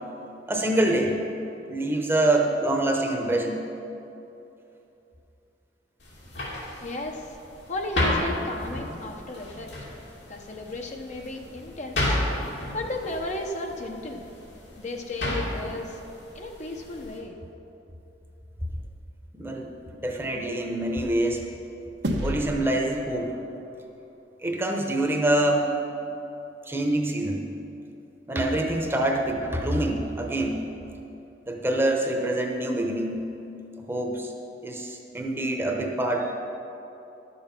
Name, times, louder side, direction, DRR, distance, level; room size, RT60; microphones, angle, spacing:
voice 1, 0.5-1.1 1.7-3.6 19.3-21.4 22.2-23.4 24.4-25.7 26.7-27.4 28.3-30.6 31.5-33.2 33.8-34.3 34.6-36.3, right 1 dB, 15° right, 1 dB, 0.9 m, -25 dB
sound 1, 6.0-17.2, left 1 dB, 80° left, 2.7 m, -33 dB
voice 2, 6.4-7.4 7.6-9.7 10.3-12.2 12.7-14.2 14.8-16.0 16.3-17.4, left 2 dB, 40° left, 2 dB, 0.8 m, -34 dB
sound 2, 22.0-24.7, right 1 dB, 75° right, 1.1 m, -33 dB
11.5 x 7.2 x 5.9 m, 2.9 s
head